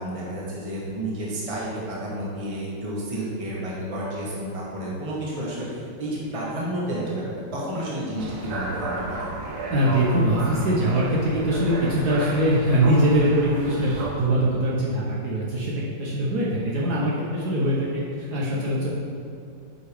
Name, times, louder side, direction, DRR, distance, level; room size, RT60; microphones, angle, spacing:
voice 1, 0.0-7.2 7.5-9.4, right 1 dB, 20° right, -5 dB, 1.0 m, -31 dB
sound 1, 8.2-14.1, right 2 dB, 80° right, 1.8 m, -33 dB
voice 2, 9.7-18.9, right 1 dB, 60° right, -6 dB, 1.3 m, -22 dB
8.0 x 5.2 x 3.5 m, 2.5 s
omnidirectional pair, 2.2 m